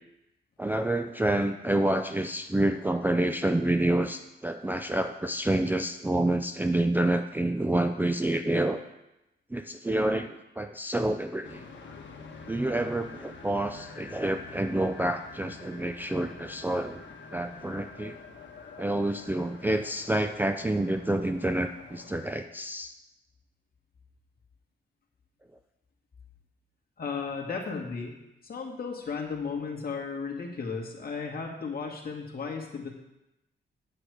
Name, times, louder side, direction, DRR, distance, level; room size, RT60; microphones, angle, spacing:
voice 1, 0.6-8.8 9.5-11.6 12.5-17.0 17.3-18.2 18.8-22.9, right 1 dB, 10° right, 6 dB, 0.4 m, -28 dB
sound 1, 11.4-22.2, left 4 dB, 65° left, 1.5 m, -47 dB
voice 2, 27.0-28.1 28.4-32.9, left 5 dB, 45° left, 0 dB, 2.0 m, -35 dB
8.8 x 8.0 x 4.9 m, 0.92 s
cardioid pair, 105°, 21 cm